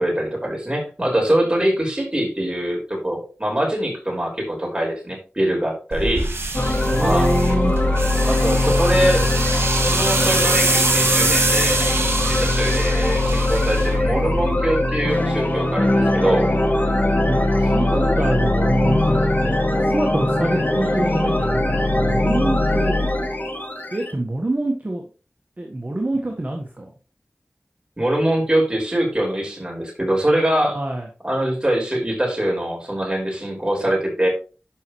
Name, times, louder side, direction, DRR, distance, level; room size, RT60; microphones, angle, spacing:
voice 1, 0.0-6.3 7.0-7.3 8.3-9.3 9.9-11.8 12.3-16.5 28.0-30.8 31.2-34.3, right 1 dB, 20° right, -1 dB, 5.4 m, -23 dB
sound 1, 5.9-14.5, right 2 dB, 75° right, 2.2 m, -24 dB
sound 2, 6.5-24.1, left 1 dB, 45° left, 2.5 m, -21 dB
voice 2, 6.9-7.7 17.3-23.0 23.9-25.1 25.6-26.9 30.6-31.1, right 1 dB, 40° right, 1 dB, 1.5 m, -25 dB
11.5 x 5.6 x 3.2 m, 0.35 s
wide cardioid pair, 55°, 4 cm